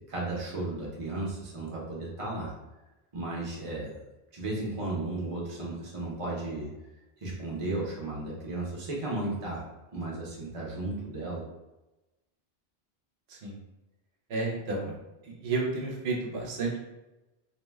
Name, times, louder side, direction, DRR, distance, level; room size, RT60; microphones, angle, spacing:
voice 1, 0.0-2.5 3.1-3.9 4.3-6.7 7.2-9.7 9.9-11.4, right 2 dB, 35° right, -4 dB, 0.7 m, -34 dB
voice 2, 13.3-13.6 14.3-15.0 15.2-16.8, right 3 dB, 80° right, -1 dB, 0.8 m, -31 dB
2.6 x 2.1 x 3.3 m, 1.0 s
omnidirectional pair, 1.1 m